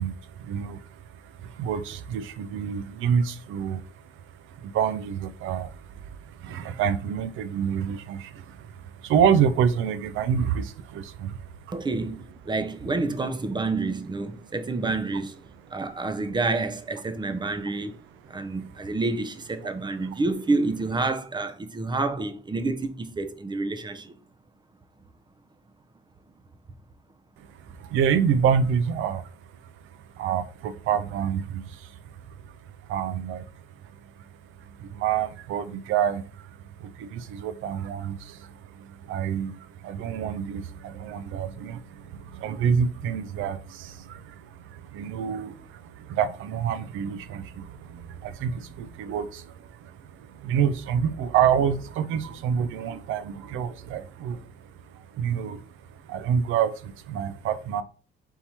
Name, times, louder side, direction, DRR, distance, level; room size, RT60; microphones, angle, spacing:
voice 1, 0.0-11.7 15.7-15.8 18.3-18.6 19.6-19.7 20.0-20.2 27.4-57.8, right 7 dB, 80° right, 0.5 m, -28 dB
voice 2, 11.7-15.4 15.7-18.0 18.3-24.1, right 3 dB, 20° right, 0.5 m, -28 dB
3.7 x 2.9 x 4.2 m
cardioid pair, 90°, 20 cm